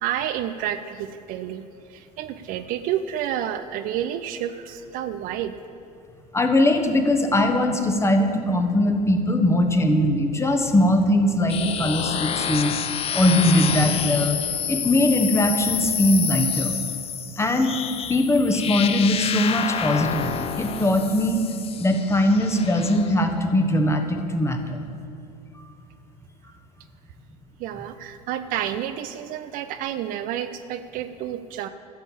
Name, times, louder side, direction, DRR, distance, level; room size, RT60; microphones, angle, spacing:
voice 1, 0.0-5.5 27.6-31.7, right 10 dB, 45° right, 10 dB, 0.5 m, -30 dB
voice 2, 6.3-12.7 13.1-14.4 14.7-16.7 17.4-17.8 18.1-21.4 21.8-24.8 25.5-25.6, left 1 dB, 15° left, 5 dB, 1.3 m, -21 dB
sound 1, 11.5-23.1, left 8 dB, 30° left, 0.8 m, -28 dB
14.0 x 7.1 x 7.3 m, 2.8 s
figure-of-eight pair, 70°, 20 cm